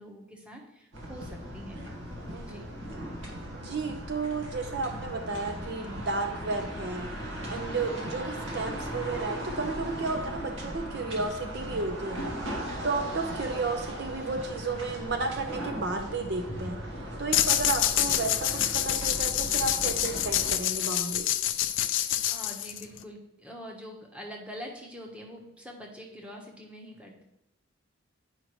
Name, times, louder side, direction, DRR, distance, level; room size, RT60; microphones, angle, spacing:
voice 1, 0.0-1.8 2.5-2.6 22.0-27.2, equal, 5° right, 0 dB, 1.1 m, -44 dB
sound 1, 0.9-20.6, equal, 70° right, 1.6 m, -38 dB
voice 2, 2.3-2.6 3.5-7.1 7.5-12.2 12.8-16.8 17.2-21.3, right 3 dB, 55° right, 5 dB, 0.6 m, -33 dB
sound 2, 17.3-23.0, left 12 dB, 65° left, 0.4 m, -27 dB
10.0 x 5.0 x 3.1 m, 0.88 s
head